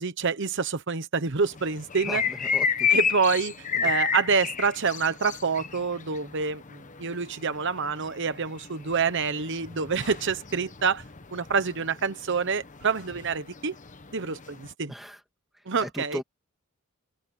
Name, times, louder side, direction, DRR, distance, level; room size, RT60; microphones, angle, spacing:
voice 1, 0.0-2.2 2.9-3.5 3.8-11.0 11.3-13.7 14.1-14.9 15.7-16.2, right 5 dB, 60° right, 1.0 m, -27 dB
sound 1, 1.4-14.7, left 6 dB, 35° left, 1.2 m, -32 dB
voice 2, 2.0-3.0 3.7-3.9 14.9-15.2 15.8-16.2, equal, ahead, 2.6 m, -37 dB
open air
head